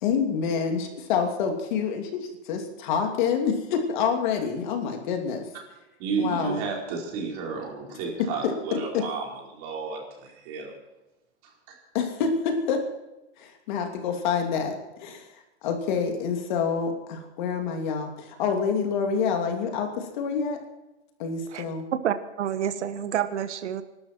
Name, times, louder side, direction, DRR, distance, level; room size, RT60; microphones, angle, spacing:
voice 1, 0.0-5.4 6.2-6.6 8.4-8.5 8.9-9.0 11.9-12.8 13.4-14.7 15.0-15.3 15.6-20.6 21.2-21.9, left 6 dB, 45° left, 4 dB, 2.9 m, -27 dB
voice 2, 6.0-10.7 11.4-11.5, right 5 dB, 35° right, -1 dB, 4.7 m, -32 dB
voice 3, 22.0-23.8, right 9 dB, 80° right, 10 dB, 1.4 m, -28 dB
24.5 x 12.5 x 4.5 m, 1.0 s
supercardioid pair, 170°, 34 cm